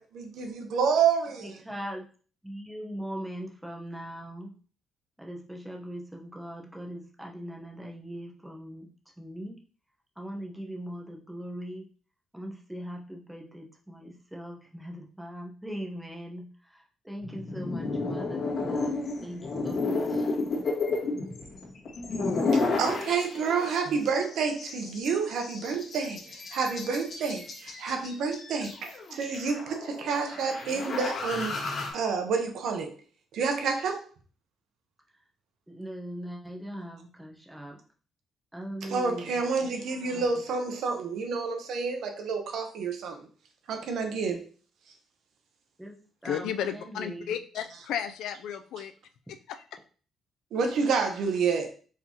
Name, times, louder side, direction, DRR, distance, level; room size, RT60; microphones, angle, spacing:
voice 1, 0.0-1.6 22.8-31.5 31.9-32.9 33.3-34.1 38.8-43.2 43.7-44.4 50.5-51.7, right 5 dB, 75° right, 1.0 m, -29 dB
voice 2, 1.4-2.1 2.4-4.5 5.2-8.9 9.2-9.6 10.2-11.9 12.3-16.5 17.0-20.6 35.7-37.8 38.5-39.4 45.8-46.0 46.2-47.3, equal, 5° right, 1.0 m, -40 dB
sound 1, 17.2-23.8 24.1-31.9, left 3 dB, 55° left, 1.8 m, -32 dB
voice 3, 46.2-48.9 49.3-49.7, left 9 dB, 85° left, 0.4 m, -33 dB
4.7 x 3.6 x 2.9 m
cardioid pair, 90°, 0 cm